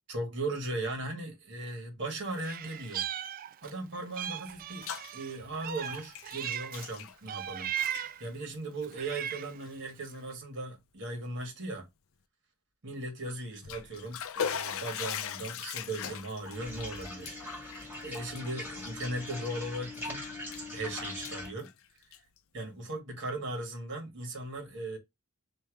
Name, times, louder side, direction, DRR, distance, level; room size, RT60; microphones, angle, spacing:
voice 1, 0.1-3.0 3.6-11.9 12.8-20.3 20.7-21.7 22.5-25.0, right 2 dB, 55° right, 1.9 m, -38 dB
Meow, 2.4-3.8 4.1-6.9 7.3-8.3 8.8-9.6, right 10 dB, 40° right, 0.3 m, -37 dB
Bathtub (filling or washing), 4.5-5.1 5.4-7.5 7.8-8.1 8.8-9.0 9.6-9.7 10.1-10.2 13.4-19.5 19.9-20.7 21.0-22.4, left 8 dB, 65° left, 0.5 m, -40 dB
sound 1, 16.5-21.5, left 2 dB, 10° right, 2.0 m, -41 dB
3.4 x 3.0 x 4.6 m
head